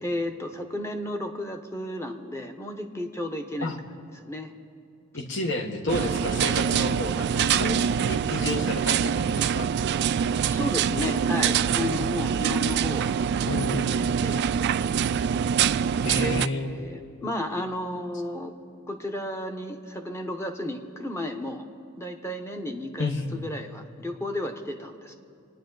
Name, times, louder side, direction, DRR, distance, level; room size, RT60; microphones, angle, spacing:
voice 1, 0.0-4.5 10.5-13.1 13.4-14.4 16.1-18.5 18.9-21.7 22.0-25.1, left 1 dB, 15° left, 5 dB, 0.9 m, -33 dB
voice 2, 5.1-9.7 13.5-13.9 16.0-16.7 23.0-23.4, left 2 dB, 60° left, 5 dB, 1.2 m, -30 dB
sound 1, 5.9-16.5, right 7 dB, 55° right, 0.3 m, -25 dB
27.0 x 9.8 x 3.9 m, 2.6 s
head